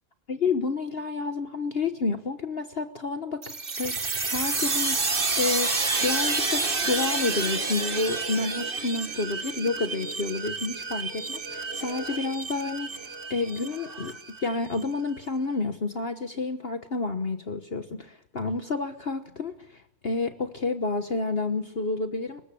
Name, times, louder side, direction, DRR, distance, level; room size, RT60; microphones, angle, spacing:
voice 1, 0.3-3.4 3.8-22.4, left 3 dB, 45° left, 8 dB, 1.3 m, -30 dB
sound 1, 3.4-14.8, right 3 dB, 40° right, 2.0 m, -29 dB
23.5 x 20.0 x 8.4 m, 0.72 s
omnidirectional pair, 1.5 m